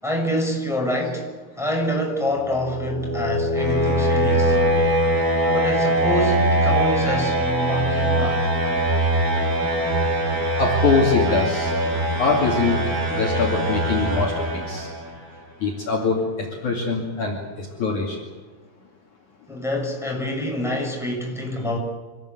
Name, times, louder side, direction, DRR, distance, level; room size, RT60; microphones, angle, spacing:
voice 1, 0.0-1.3 1.6-4.6 5.4-8.5 19.5-21.8, equal, ahead, 0 dB, 6.0 m, -26 dB
sound 1, 2.3-15.2, right 1 dB, 20° right, 3.5 m, -22 dB
Slam, 4.5-6.4, right 1 dB, 85° right, 5.3 m, -39 dB
voice 2, 10.6-11.7 12.2-14.9 15.6-18.2, left 4 dB, 50° left, -1 dB, 3.6 m, -23 dB
26.5 x 19.5 x 8.1 m, 1.4 s
omnidirectional pair, 5.1 m